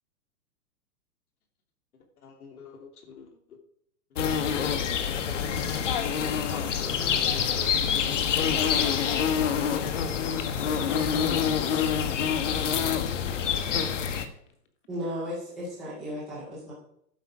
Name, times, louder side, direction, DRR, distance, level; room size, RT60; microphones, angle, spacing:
voice 1, 1.9-3.6 4.6-4.9 6.2-8.3 9.1-9.3 11.2-11.7, left 5 dB, 65° left, 3 dB, 3.2 m, -47 dB
sound 1, 4.2-14.3, left 7 dB, 50° left, 1.3 m, -26 dB
voice 2, 5.6-8.2 8.5-10.1, left 8 dB, 35° left, 7 dB, 1.5 m, -40 dB
voice 3, 14.9-16.7, equal, ahead, -11 dB, 0.5 m, -35 dB
11.5 x 8.7 x 4.9 m, 0.71 s
hypercardioid pair, 170°, 47 cm